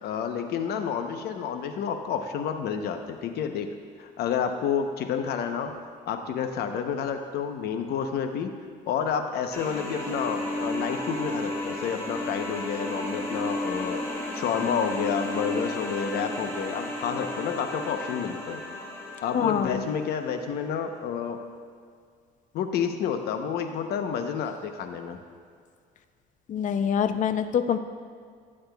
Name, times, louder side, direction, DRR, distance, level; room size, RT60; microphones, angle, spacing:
voice 1, 0.0-3.7 4.0-5.7 6.1-8.5 8.9-14.0 14.3-18.6 19.2-21.4 22.5-25.2, left 7 dB, 70° left, 6 dB, 0.9 m, -29 dB
sound 1, 9.5-20.3, left 1 dB, 15° left, 2.0 m, -33 dB
voice 2, 19.3-19.8 26.5-27.8, left 8 dB, 50° left, 10 dB, 0.6 m, -25 dB
15.5 x 8.7 x 2.4 m, 2.1 s
cardioid pair, 110°, 17 cm